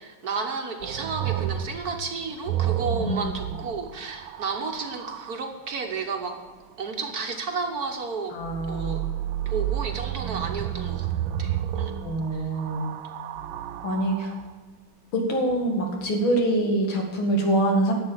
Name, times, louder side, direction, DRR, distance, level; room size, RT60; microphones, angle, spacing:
voice 1, 0.0-6.4 6.8-8.4 8.7-9.0 9.4-11.1 11.4-11.9 12.3-12.4, right 4 dB, 50° right, 4 dB, 1.6 m, -32 dB
sound 1, 0.8-5.4 8.4-14.5 15.5-16.1, right 11 dB, 80° right, 1.4 m, -31 dB
voice 2, 8.3-9.0 12.0-12.9 13.8-14.3 15.1-17.9, right 1 dB, 80° left, 2 dB, 2.9 m, -24 dB
11.5 x 8.1 x 8.9 m, 1.4 s
omnidirectional pair, 2.2 m